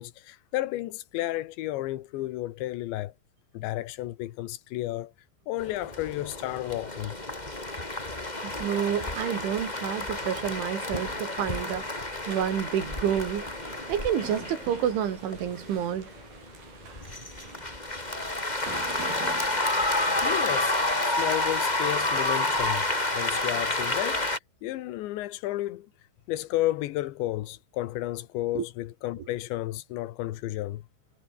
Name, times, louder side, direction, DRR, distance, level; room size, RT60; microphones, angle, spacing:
voice 1, 0.0-3.1 3.5-5.1 5.5-7.2 8.7-8.9 20.2-22.9 23.1-24.3 24.6-25.9 26.3-30.9, left 16 dB, 80° left, 3.5 m, -32 dB
sound 1, 5.6-24.4, left 2 dB, 10° left, 2.5 m, -30 dB
voice 2, 8.4-13.5 13.9-16.1 28.6-28.7, right 9 dB, 90° right, 5.4 m, -29 dB
sound 2, 9.0-23.0, right 4 dB, 55° right, 8.4 m, -46 dB
omnidirectional pair, 5.3 m